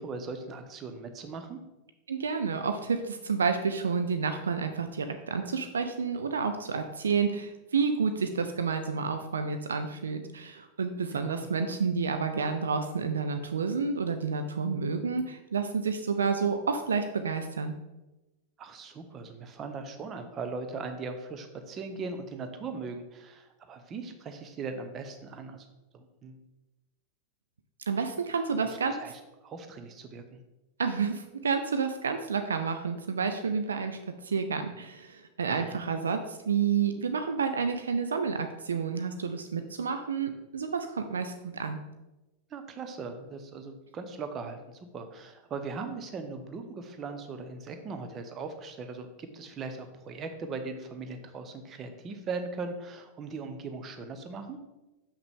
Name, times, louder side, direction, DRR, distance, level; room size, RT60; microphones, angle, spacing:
voice 1, 0.0-1.6 11.1-11.5 18.6-25.7 25.9-26.4 28.6-30.4 35.5-35.8 42.5-54.6, right 4 dB, 25° right, 7 dB, 0.8 m, -39 dB
voice 2, 2.1-17.7 27.9-28.9 30.8-34.0 34.2-41.8, right 5 dB, 70° right, 7 dB, 0.4 m, -30 dB
6.5 x 5.9 x 3.6 m, 1.0 s
figure-of-eight pair, 90°, 0 cm